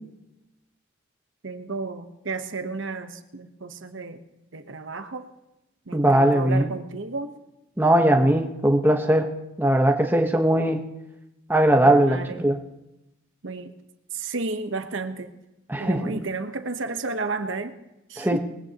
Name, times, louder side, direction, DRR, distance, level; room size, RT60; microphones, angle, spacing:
voice 1, 1.4-4.2 4.5-5.3 5.9-7.3 11.8-12.5 13.4-13.7 14.1-15.3 15.8-17.8 18.1-18.4, right 3 dB, 65° right, 8 dB, 1.0 m, -32 dB
voice 2, 5.9-6.7 7.8-9.3 9.6-10.8 11.5-12.6 15.7-16.2 18.2-18.4, right 1 dB, 10° right, 3 dB, 1.0 m, -20 dB
21.0 x 15.5 x 2.9 m, 0.94 s
head